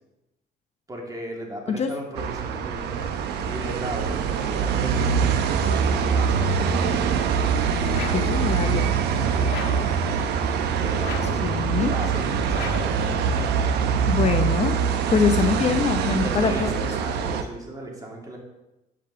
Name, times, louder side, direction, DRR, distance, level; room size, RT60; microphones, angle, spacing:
voice 1, 0.9-3.0 3.4-5.4 5.8-7.2 9.2-10.1 10.7-11.1 11.7-12.8 16.1-18.4, right 1 dB, 20° right, -1 dB, 2.9 m, -36 dB
sound 1, 2.1-17.4, right 6 dB, 75° right, 1.0 m, -24 dB
sound 2, 7.9-8.4 9.5-9.9 11.0-11.5 12.5-13.0, left 6 dB, 85° left, 1.7 m, -33 dB
voice 2, 8.1-8.9 11.4-11.9 14.1-14.8 15.1-16.9, left 5 dB, 40° left, 6 dB, 0.9 m, -24 dB
10.5 x 5.2 x 6.9 m, 0.97 s
cardioid pair, 110°, 17 cm